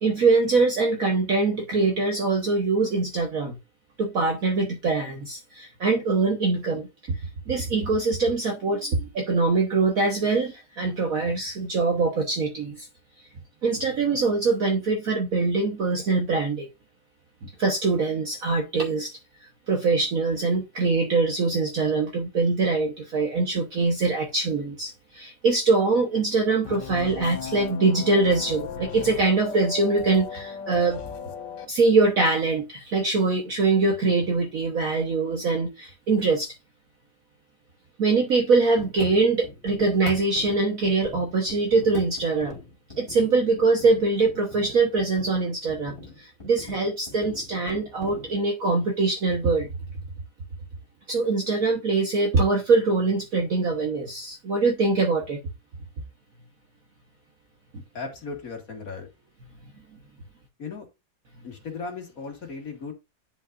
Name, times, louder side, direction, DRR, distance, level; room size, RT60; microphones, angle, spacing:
voice 1, 0.0-3.6 4.0-7.2 7.5-12.9 13.6-16.6 17.4-19.1 19.7-31.0 31.7-36.5 38.0-42.6 43.0-49.7 51.1-55.4, right 3 dB, 50° right, 1.4 m, -23 dB
sound 1, 26.6-31.7, left 7 dB, 70° left, 1.5 m, -36 dB
sound 2, 38.8-48.4, left 2 dB, 25° left, 3.5 m, -45 dB
voice 2, 57.9-59.1 60.6-60.9 61.4-62.9, left 4 dB, 45° left, 2.4 m, -36 dB
10.0 x 5.3 x 2.5 m
omnidirectional pair, 2.0 m